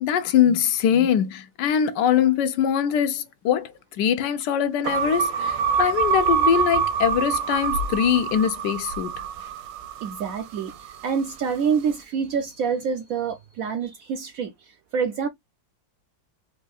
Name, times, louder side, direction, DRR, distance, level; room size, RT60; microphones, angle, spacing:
voice 1, 0.0-9.1, left 9 dB, 75° left, 1.2 m, -22 dB
sound 1, 4.8-11.2, right 6 dB, 85° right, 1.3 m, -26 dB
voice 2, 10.0-14.5 14.9-15.3, right 6 dB, 70° right, 0.8 m, -26 dB
4.5 x 2.8 x 2.3 m
omnidirectional pair, 1.9 m